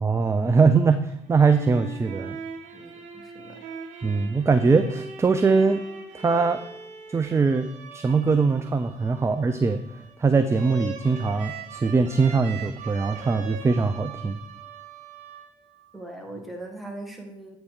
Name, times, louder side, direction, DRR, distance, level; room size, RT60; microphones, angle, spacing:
voice 1, 0.0-2.4 4.0-5.8 6.1-6.6 7.1-14.4, right 4 dB, 20° right, 8 dB, 0.4 m, -22 dB
sound 1, 1.2-15.9, right 6 dB, 55° right, 1.3 m, -41 dB
voice 2, 2.7-3.6 15.9-17.6, right 2 dB, ahead, 0 dB, 1.6 m, -40 dB
8.2 x 3.1 x 5.0 m, 0.76 s
hypercardioid pair, 55°, 15 cm